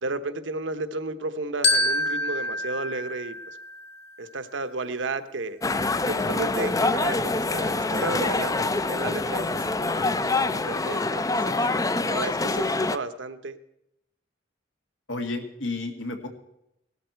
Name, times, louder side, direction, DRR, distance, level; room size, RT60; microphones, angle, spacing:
voice 1, 0.0-3.6 4.2-5.6 6.1-11.5 12.1-13.6, right 3 dB, 75° right, 11 dB, 1.0 m, -33 dB
Glockenspiel, 1.6-4.1, left 2 dB, 65° left, 2.2 m, -27 dB
sound 1, 5.6-13.0, left 3 dB, 20° left, 0.5 m, -25 dB
voice 2, 11.5-11.8 15.1-16.3, left 2 dB, 80° left, 4 dB, 2.1 m, -33 dB
18.5 x 12.5 x 4.6 m, 0.81 s
head